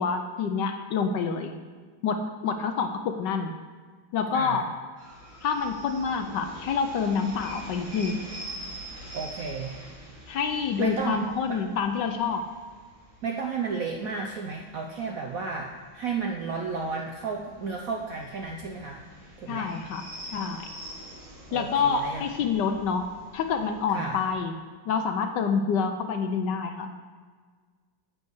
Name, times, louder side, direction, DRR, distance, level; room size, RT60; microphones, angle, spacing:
voice 1, 0.0-1.5 2.0-3.5 4.1-4.7 5.4-8.2 10.3-12.5 19.5-20.7 21.5-24.5 24.9-26.9, left 5 dB, 70° left, 6 dB, 1.2 m, -27 dB
sound 1, 5.0-24.3, right 1 dB, 35° right, 2.3 m, -45 dB
voice 2, 9.1-9.9 10.8-11.2 11.5-11.6 13.2-19.0 19.4-19.7 21.5-22.2 23.9-24.2, right 4 dB, 65° right, 1 dB, 0.8 m, -33 dB
9.9 x 4.7 x 7.9 m, 1.5 s
omnidirectional pair, 2.2 m